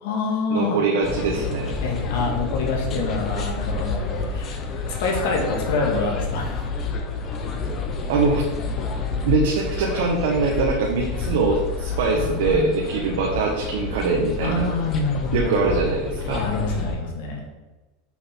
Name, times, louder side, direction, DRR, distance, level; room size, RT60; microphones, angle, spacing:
voice 1, 0.0-0.8 1.8-4.6 4.9-6.6 12.1-12.7 14.4-15.8 16.2-17.4, left 3 dB, 70° left, 0 dB, 1.8 m, -26 dB
voice 2, 0.5-1.8 8.1-8.5 9.3-14.7 15.3-16.4, right 3 dB, 75° right, 0 dB, 1.1 m, -23 dB
sound 1, 1.0-16.9, left 3 dB, 25° left, 0.8 m, -29 dB
6.1 x 5.5 x 4.5 m, 1.2 s
supercardioid pair, 165°, 0 cm